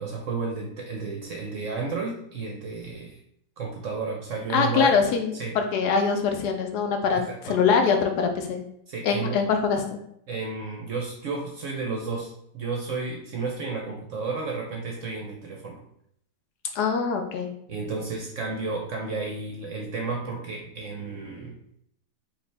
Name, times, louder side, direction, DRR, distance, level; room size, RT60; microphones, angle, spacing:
voice 1, 0.0-3.2 3.6-4.9 5.3-5.6 7.1-7.6 8.9-9.4 10.3-15.8 17.7-21.6, right 4 dB, 60° right, -1 dB, 0.8 m, -32 dB
voice 2, 4.5-8.6 9.0-10.0 16.7-17.5, left 5 dB, 75° left, 4 dB, 1.1 m, -23 dB
4.8 x 2.6 x 3.3 m, 0.72 s
omnidirectional pair, 1.9 m